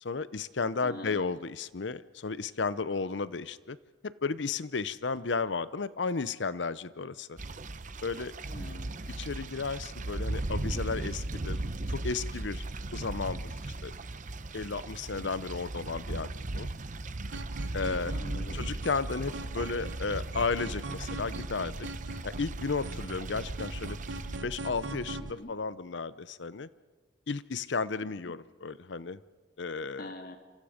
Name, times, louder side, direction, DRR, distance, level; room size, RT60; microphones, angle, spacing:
voice 1, 0.0-3.8 4.0-7.4 8.0-8.3 9.2-11.6 11.9-12.6 12.9-13.9 14.5-16.7 17.7-18.1 18.5-21.9 22.2-24.0 24.4-26.7 27.3-29.2 29.6-30.1, left 4 dB, 75° left, 16 dB, 0.7 m, -33 dB
voice 2, 0.8-1.4 8.4-9.0 18.1-18.6 25.3-25.5 28.0-28.3 29.9-30.4, left 1 dB, 55° left, 5 dB, 2.1 m, -44 dB
sound 1, 7.4-24.4, right 2 dB, 45° right, 0.9 m, -37 dB
sound 2, 17.3-25.3, right 2 dB, 75° right, 1.2 m, -41 dB
27.5 x 27.0 x 5.1 m, 1.3 s
head